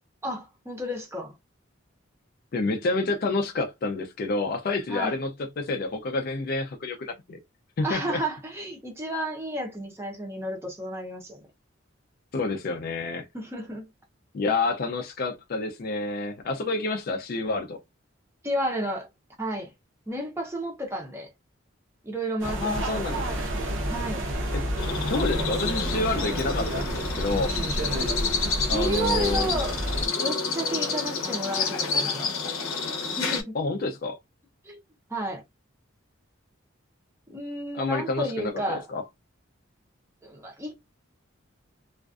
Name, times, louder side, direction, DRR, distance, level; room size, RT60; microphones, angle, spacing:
voice 1, 0.2-1.3 4.9-5.2 7.8-11.4 13.3-13.9 18.4-19.1 19.4-19.7 20.1-21.3 22.0-23.3 23.9-24.2 28.7-29.8 30.2-32.4 33.2-33.6 34.6-34.8 35.1-35.4 37.3-38.9 40.2-40.7, right 1 dB, 10° right, 0.6 m, -32 dB
voice 2, 2.5-5.3 5.6-7.4 7.8-8.2 12.3-13.3 14.3-17.8 22.4-23.4 24.5-24.7 25.0-27.6 28.7-29.5 33.5-34.2 37.7-39.0, left 3 dB, 45° left, 0.4 m, -29 dB
sound 1, 22.4-30.1, right 1 dB, 65° right, 0.7 m, -30 dB
sound 2, 24.8-33.4, left 4 dB, 85° left, 0.7 m, -29 dB
2.4 x 2.2 x 2.3 m
head